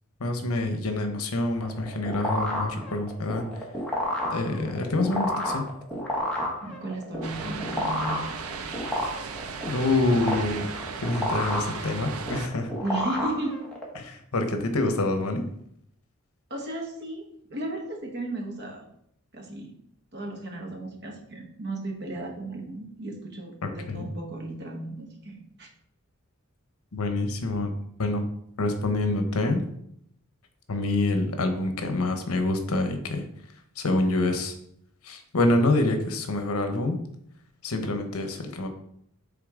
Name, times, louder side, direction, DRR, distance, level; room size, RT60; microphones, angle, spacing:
voice 1, 0.2-3.4 4.3-5.6 9.7-12.7 13.9-15.4 23.6-24.1 26.9-27.7 28.0-28.2 28.6-29.6 30.7-33.2 33.8-34.5 35.0-37.0 37.6-38.7, left 2 dB, 75° left, 6 dB, 0.9 m, -26 dB
sound 1, 1.6-14.0, left 1 dB, 5° left, 1.2 m, -31 dB
voice 2, 6.6-8.2 12.8-13.6 16.5-18.9 19.3-19.7 20.1-25.7, right 2 dB, 50° right, 1 dB, 1.2 m, -35 dB
sound 2, 7.2-12.5, right 5 dB, 75° right, 0.6 m, -36 dB
8.3 x 3.6 x 3.7 m, 0.71 s
head